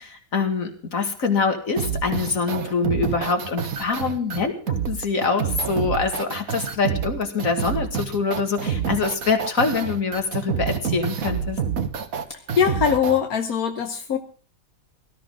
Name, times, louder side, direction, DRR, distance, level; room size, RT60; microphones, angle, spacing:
voice 1, 0.0-11.6, left 4 dB, 65° left, 5 dB, 2.6 m, -25 dB
sound 1, 1.8-13.2, right 7 dB, 70° right, 1.7 m, -27 dB
voice 2, 12.6-14.2, left 7 dB, 85° left, 5 dB, 1.6 m, -21 dB
18.0 x 13.5 x 3.8 m, 0.39 s
omnidirectional pair, 1.5 m